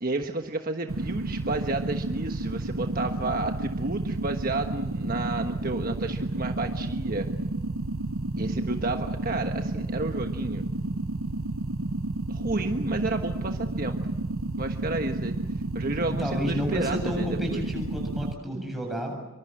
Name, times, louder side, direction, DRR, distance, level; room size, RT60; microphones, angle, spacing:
voice 1, 0.0-7.3 8.4-10.7 12.3-14.0 14.6-15.3 15.7-17.6, right 2 dB, 45° right, 5 dB, 1.3 m, -31 dB
sound 1, 0.9-18.3, right 2 dB, 80° right, 1.0 m, -31 dB
voice 2, 16.1-19.1, equal, ahead, 1 dB, 7.7 m, -31 dB
26.5 x 24.5 x 7.8 m, 1.2 s
head